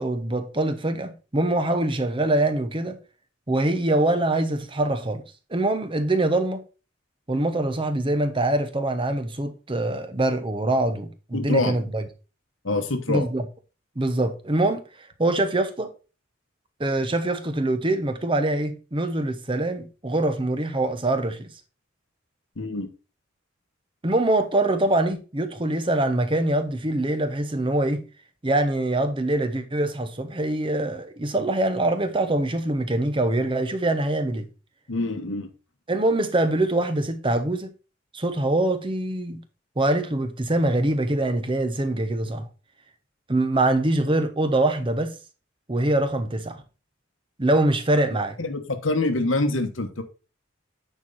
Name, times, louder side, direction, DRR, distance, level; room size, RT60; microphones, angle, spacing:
voice 1, 0.0-3.0 3.5-5.2 5.5-6.6 7.3-12.0 13.1-13.4 14.0-14.8 15.2-15.9 16.8-21.5 24.0-28.0 28.4-34.5 35.9-37.7 38.1-39.4 39.8-42.5 43.3-45.1 45.7-46.6 47.4-48.4, right 1 dB, 25° right, 0.9 m, -24 dB
voice 2, 11.3-11.7 12.6-13.3 22.6-22.9 34.9-35.5 48.4-50.0, left 2 dB, 80° left, 1.3 m, -25 dB
9.1 x 4.6 x 4.0 m
head